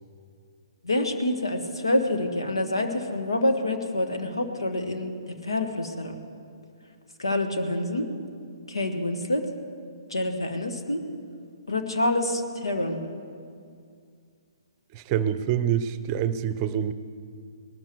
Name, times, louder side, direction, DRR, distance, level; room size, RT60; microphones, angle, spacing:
voice 1, 0.8-6.2 7.2-8.1 8.7-9.4 10.1-11.0 11.7-13.0, left 1 dB, 80° left, 4 dB, 1.6 m, -27 dB
voice 2, 14.9-16.9, right 9 dB, 30° right, 14 dB, 0.7 m, -26 dB
19.0 x 13.0 x 4.7 m, 2.3 s
figure-of-eight pair, 125°, 3 cm